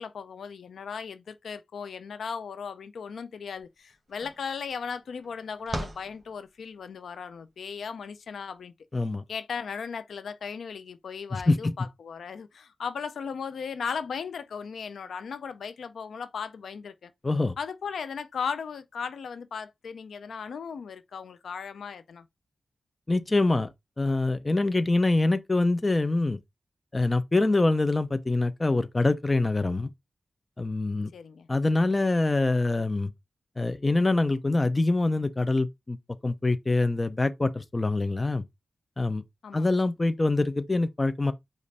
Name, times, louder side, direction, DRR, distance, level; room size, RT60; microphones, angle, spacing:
voice 1, 0.0-8.7 9.3-17.1 17.6-22.2 31.1-31.5 39.4-39.7, left 6 dB, 90° left, 0.4 m, -37 dB
sound 1, 3.6-3.7 3.9-7.0, right 1 dB, 25° right, 1.6 m, -40 dB
voice 2, 8.9-9.2 11.3-11.7 17.2-17.5 23.1-23.7 24.0-26.4 26.9-29.9 30.6-31.1 31.5-33.1 33.6-36.0 36.2-38.4 39.0-39.2 39.5-41.3, left 2 dB, 25° left, 0.5 m, -25 dB
5.1 x 2.5 x 4.1 m
wide cardioid pair, 95°, 0 cm